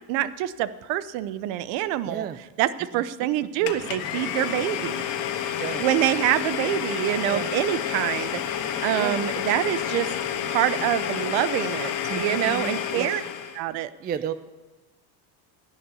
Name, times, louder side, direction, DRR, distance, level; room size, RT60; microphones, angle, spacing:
voice 1, 0.1-2.3 2.6-5.0 5.8-8.4 8.8-10.1 10.5-13.2 13.5-13.9, right 13 dB, 65° right, 15 dB, 0.8 m, -26 dB
voice 2, 2.0-2.4 2.9-3.0 3.4-3.9 5.6-5.8 7.3-7.5 8.9-9.2 12.1-13.1 14.0-14.3, right 9 dB, 20° right, 12 dB, 0.4 m, -33 dB
Domestic sounds home sounds, 3.7-13.6, left 9 dB, 60° left, 1.5 m, -29 dB
sound 1, 3.7-11.3, left 3 dB, ahead, 6.0 m, -46 dB
16.5 x 5.9 x 8.4 m, 1.1 s
supercardioid pair, 120°, 50 cm